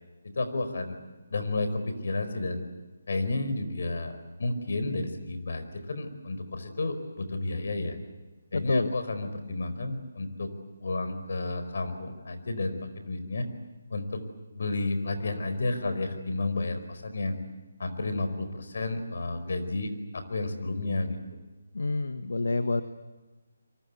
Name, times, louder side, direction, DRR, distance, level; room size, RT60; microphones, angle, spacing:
voice 1, 0.2-1.0 1.3-2.6 3.1-8.0 8.5-10.5 10.8-13.5 13.9-14.2 14.5-17.4 17.8-21.2, left 2 dB, 65° left, 9 dB, 4.7 m, -31 dB
voice 2, 8.5-8.9 21.7-22.8, left 3 dB, 80° left, 10 dB, 1.3 m, -28 dB
26.5 x 23.5 x 8.5 m, 1.2 s
hypercardioid pair, 165°, 0 cm